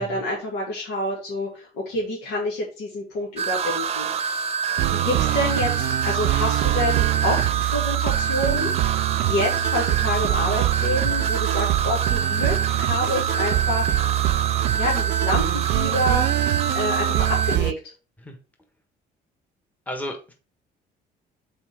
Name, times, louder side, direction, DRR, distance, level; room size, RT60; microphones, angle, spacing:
voice 1, 0.0-4.5 4.8-9.0 9.2-14.0 14.8-16.4 16.7-17.7, left 1 dB, 90° left, -4 dB, 2.4 m, -28 dB
sound 1, 3.4-17.6, right 6 dB, 40° right, 0.7 m, -26 dB
sound 2, 4.8-17.7, right 16 dB, 75° right, 0.4 m, -24 dB
voice 2, 19.9-20.3, left 1 dB, 10° left, 3 dB, 1.4 m, -33 dB
5.7 x 4.5 x 4.9 m, 0.34 s
cardioid pair, 110°, 17 cm